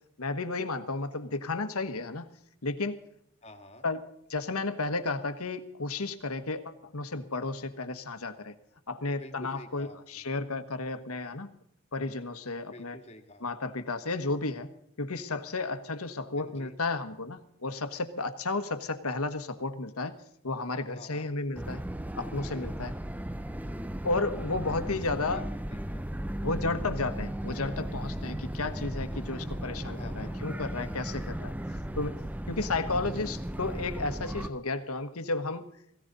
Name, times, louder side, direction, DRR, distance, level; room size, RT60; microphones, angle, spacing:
voice 1, 0.2-2.3 2.6-3.0 3.8-4.0 4.3-8.5 8.9-11.5 11.9-13.0 13.4-14.7 15.0-20.2 20.4-21.8 22.2-23.0 24.0-25.5 26.4-31.6 32.0-32.2 32.5-35.7, left 3 dB, 85° left, 10 dB, 1.4 m, -33 dB
voice 2, 3.4-3.8 9.1-10.3 12.7-13.5 16.4-16.7 20.9-21.3 25.3-26.1 29.9-30.4, left 1 dB, 30° left, 5 dB, 1.8 m, -49 dB
sound 1, 21.5-34.5, equal, 5° right, 0.5 m, -36 dB
17.5 x 17.5 x 4.1 m, 0.73 s
head